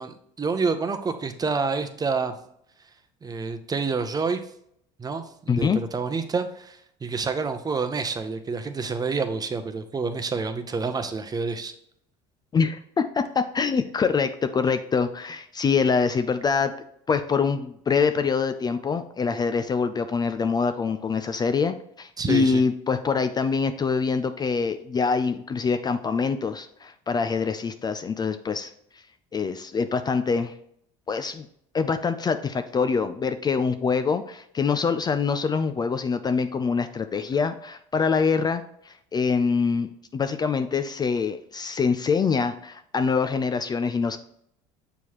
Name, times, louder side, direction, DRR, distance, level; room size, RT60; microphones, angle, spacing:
voice 1, 0.0-2.3 3.2-4.4 5.0-11.7 22.2-22.6, right 4 dB, 25° right, 7 dB, 0.8 m, -28 dB
voice 2, 5.5-5.8 12.5-16.7 17.1-28.7 29.3-30.5 31.1-31.5 31.7-44.2, left 5 dB, 25° left, 10 dB, 0.4 m, -25 dB
7.0 x 4.6 x 3.0 m, 0.70 s
supercardioid pair, 80°, 15 cm